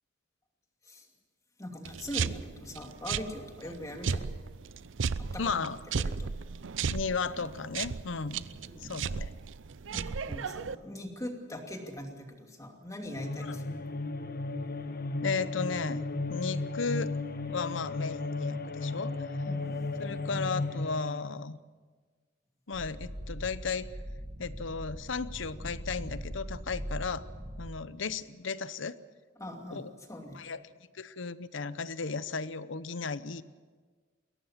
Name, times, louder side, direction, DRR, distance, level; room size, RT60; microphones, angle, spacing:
voice 1, 1.6-4.4 5.2-5.5 6.1-6.3 8.5-8.9 9.9-13.8 19.4-19.9 29.4-30.4, left 1 dB, 15° left, 2 dB, 2.6 m, -42 dB
sound 1, 1.8-10.7, right 5 dB, 80° right, 0.6 m, -35 dB
voice 2, 5.4-5.8 6.9-8.4 8.8-9.3 13.4-13.6 15.2-17.2 17.5-19.1 20.0-21.6 22.7-23.9 24.4-27.2 27.6-29.0 29.7-29.9 30.3-30.6 30.9-33.4, left 4 dB, 75° left, 15 dB, 0.8 m, -35 dB
sound 2, 13.1-21.3, left 3 dB, 50° left, 1.0 m, -34 dB
sound 3, 22.7-27.8, equal, 25° right, 1.6 m, -41 dB
22.0 x 17.5 x 7.4 m, 1.5 s
head